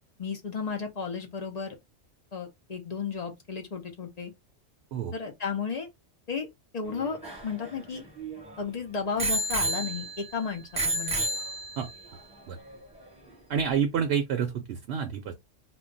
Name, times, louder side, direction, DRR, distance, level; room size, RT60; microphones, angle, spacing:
voice 1, 0.2-1.8 2.3-4.3 5.1-5.9 6.3-6.5 6.7-8.0 8.6-11.2, left 5 dB, 45° left, 0.6 m, -33 dB
Bicycle bell, 6.9-8.5 9.2-10.3 10.8-12.0 12.7-12.8, right 2 dB, 5° right, 1.0 m, -31 dB
voice 2, 13.5-15.3, right 7 dB, 65° right, 0.8 m, -28 dB
2.2 x 2.2 x 3.8 m
omnidirectional pair, 1.3 m